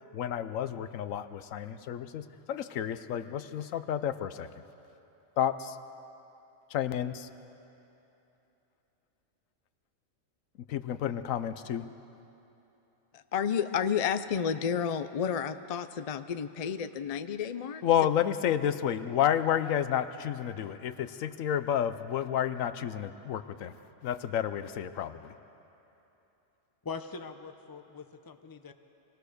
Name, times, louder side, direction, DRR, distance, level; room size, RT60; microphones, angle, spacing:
voice 1, 0.1-4.5 5.4-5.8 6.7-7.3 10.7-11.8 17.8-23.7 24.0-25.3, left 10 dB, 80° left, 12 dB, 1.1 m, -30 dB
voice 2, 13.1-17.8, left 7 dB, 60° left, 11 dB, 0.3 m, -31 dB
voice 3, 26.8-28.7, left 5 dB, 20° left, 8 dB, 0.6 m, -42 dB
23.5 x 17.5 x 6.5 m, 3.0 s
omnidirectional pair, 1.4 m